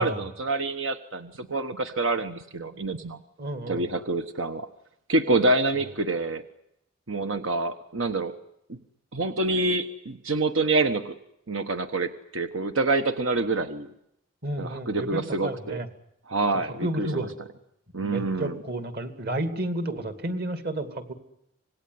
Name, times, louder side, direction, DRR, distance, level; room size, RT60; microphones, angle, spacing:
voice 1, 0.0-3.2 3.7-4.7 5.1-6.4 7.1-8.3 8.7-8.8 9.1-11.1 11.5-13.9 14.6-15.8 16.3-17.2 17.9-18.5, right 2 dB, 85° right, 8 dB, 1.3 m, -27 dB
voice 2, 3.4-3.9 5.7-5.9 14.4-15.9 16.8-17.3 18.0-21.1, right 1 dB, 55° right, 8 dB, 2.6 m, -31 dB
26.5 x 19.5 x 9.6 m, 0.80 s
head